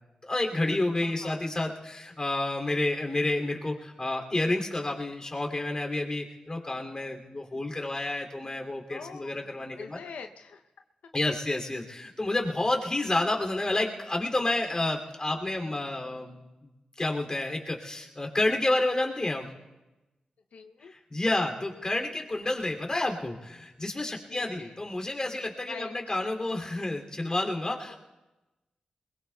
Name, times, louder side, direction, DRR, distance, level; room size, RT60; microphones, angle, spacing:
voice 1, 0.2-10.0 11.1-16.7 17.0-19.5 20.8-28.0, left 2 dB, 30° left, 1 dB, 2.7 m, -30 dB
voice 2, 1.0-1.4 8.9-10.6 20.5-20.9 24.3-24.8 25.7-25.9 27.9-28.0, left 5 dB, 85° left, 5 dB, 0.7 m, -44 dB
22.0 x 21.0 x 2.3 m, 1.1 s
cardioid pair, 60°, 2 cm